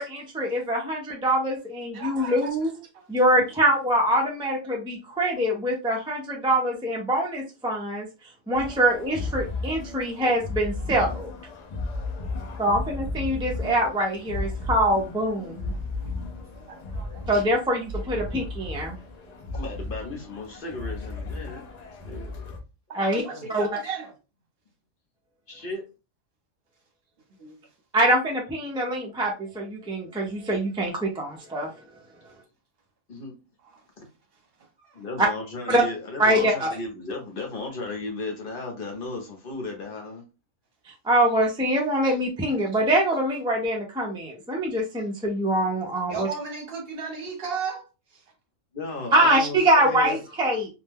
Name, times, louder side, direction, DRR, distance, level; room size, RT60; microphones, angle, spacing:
voice 1, 0.0-2.7 3.1-8.1 8.5-11.3 12.6-15.7 17.3-19.0 22.9-23.2 23.5-23.7 27.9-31.7 35.2-35.3 35.7-35.8 36.2-36.7 41.0-46.3 49.1-50.7, right 1 dB, 5° right, 0.4 m, -24 dB
voice 2, 1.9-3.1 12.3-12.5 16.7-17.3 22.9-24.1 27.4-27.6 33.6-33.8 34.8-35.0 46.1-47.9 48.1-48.2, right 5 dB, 50° right, 1.1 m, -36 dB
sound 1, 8.5-22.6, left 2 dB, 80° left, 0.3 m, -34 dB
voice 3, 19.5-21.6 22.0-22.4 23.0-23.5 25.5-25.9 33.1-33.3 34.9-40.2 48.7-50.2, left 3 dB, 50° left, 1.0 m, -35 dB
2.6 x 2.1 x 3.4 m
omnidirectional pair, 1.3 m